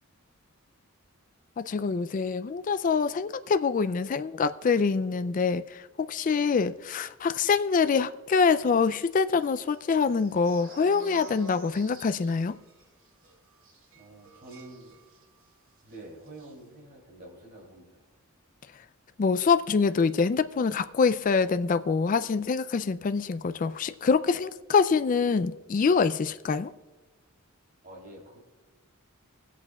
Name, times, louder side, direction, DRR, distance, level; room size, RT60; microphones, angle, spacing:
voice 1, 1.6-12.6 19.2-26.7, left 5 dB, 35° left, 0.3 m, -25 dB
sound 1, 8.8-15.5 15.8-16.0 16.3-16.5, right 2 dB, 65° right, 1.9 m, -50 dB
voice 2, 13.9-14.9 15.8-18.1 27.8-28.4, right 1 dB, 50° right, 2.9 m, -47 dB
24.5 x 8.3 x 2.3 m
head